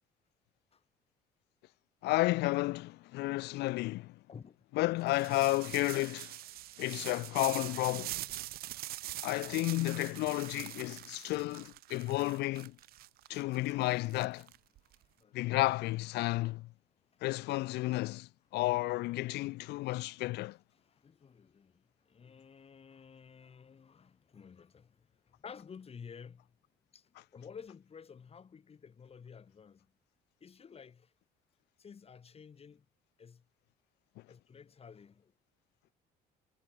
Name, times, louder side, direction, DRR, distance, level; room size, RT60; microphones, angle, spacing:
voice 1, 2.0-4.2 4.8-6.3 6.8-8.2 9.2-12.8 13.3-14.5 15.3-16.7 17.2-20.6, left 19 dB, 85° left, 0.9 m, -32 dB
sound 1, 5.1-15.0, right 16 dB, 65° right, 0.5 m, -44 dB
voice 2, 14.8-15.6 17.1-17.3 20.7-26.6 26.9-29.9 30.4-31.1 31.8-32.9 33.2-33.5 34.3-35.3, left 6 dB, 35° left, 6.1 m, -53 dB
cardioid pair, 110°, 17 cm